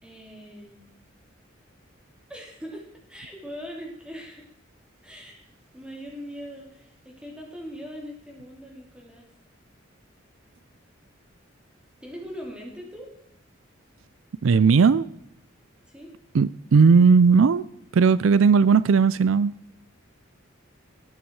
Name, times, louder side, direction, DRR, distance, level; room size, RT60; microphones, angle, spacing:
voice 1, 0.0-0.8 2.3-4.5 5.0-5.4 5.7-9.3 12.0-13.1 15.9-16.1, equal, 5° right, 3.2 m, -41 dB
voice 2, 14.4-15.1 16.3-17.6 17.9-19.5, right 5 dB, 85° right, 0.4 m, -17 dB
18.5 x 9.2 x 4.8 m
head